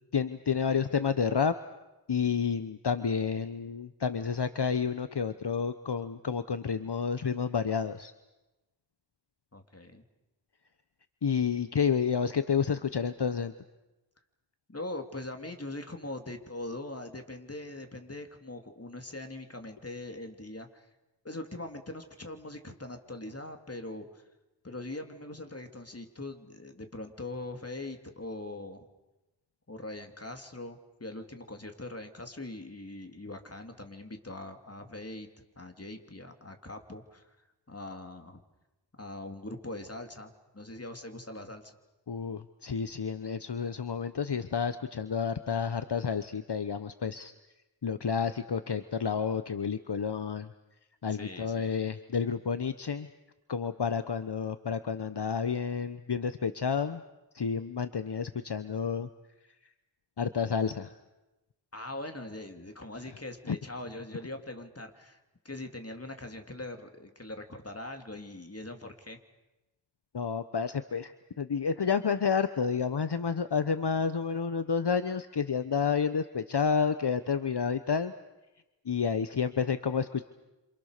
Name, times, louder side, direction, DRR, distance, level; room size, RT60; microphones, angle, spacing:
voice 1, 0.1-1.5 2.1-8.1 11.2-13.5 42.1-47.3 47.8-50.5 51.0-53.1 53.5-57.0 57.3-59.1 60.2-60.9 63.5-63.6 70.1-78.1 78.9-80.2, left 6 dB, 65° left, 11 dB, 1.1 m, -30 dB
voice 2, 9.5-10.0 14.7-20.9 21.2-24.3 24.6-28.9 29.7-37.4 37.7-38.4 39.0-41.7 51.1-51.7 61.7-69.2, left 2 dB, 35° left, 6 dB, 3.2 m, -42 dB
29.5 x 27.5 x 6.7 m, 1.0 s
wide cardioid pair, 60°, 44 cm